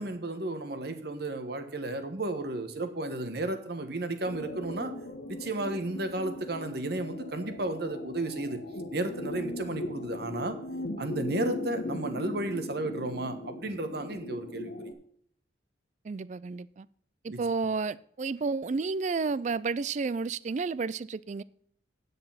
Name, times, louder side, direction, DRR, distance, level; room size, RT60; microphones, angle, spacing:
voice 1, 0.0-4.9 5.3-8.6 8.9-10.6 11.0-14.9 17.3-17.4, right 2 dB, 55° right, 1.2 m, -33 dB
sound 1, 4.2-14.9, left 1 dB, 65° left, 1.3 m, -39 dB
voice 2, 16.0-16.9 17.2-21.4, right 4 dB, 40° right, 0.3 m, -31 dB
9.9 x 6.8 x 5.7 m
head